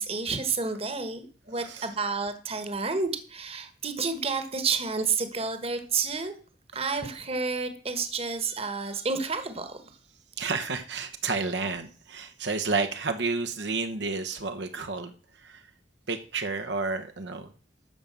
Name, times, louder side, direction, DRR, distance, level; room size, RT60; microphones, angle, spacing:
voice 1, 0.0-6.3 6.7-9.8, right 4 dB, 30° right, 9 dB, 1.3 m, -30 dB
voice 2, 1.5-1.9 10.4-15.1 15.4-15.6 16.1-17.5, right 4 dB, 70° right, 6 dB, 1.0 m, -31 dB
12.5 x 5.2 x 7.4 m, 0.41 s
head